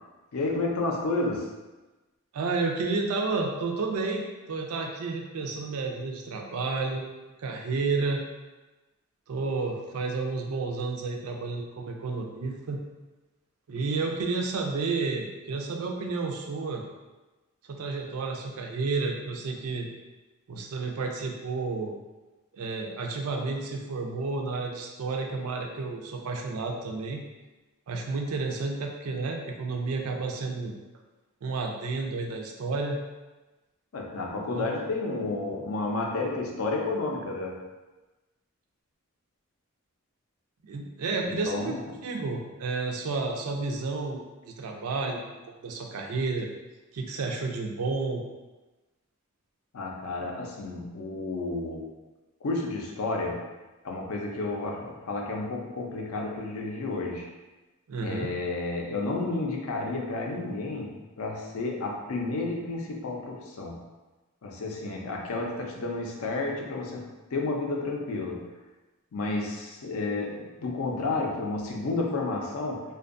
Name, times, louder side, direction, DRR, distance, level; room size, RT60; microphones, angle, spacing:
voice 1, 0.3-1.5 33.9-37.6 41.2-41.8 49.7-51.9 52.4-53.4 53.8-57.3 58.0-63.8 64.4-67.0 67.3-68.5 69.1-72.8, left 3 dB, 70° left, 0 dB, 0.5 m, -31 dB
voice 2, 2.3-7.1 7.4-8.2 9.3-12.8 13.7-16.8 17.7-19.9 20.5-21.9 22.5-27.2 27.9-30.7 31.4-33.0 34.5-34.7 40.7-45.3 45.6-46.5 46.9-48.2 57.9-58.3, right 3 dB, 80° right, 1 dB, 0.4 m, -31 dB
2.5 x 2.2 x 2.5 m, 1.1 s
head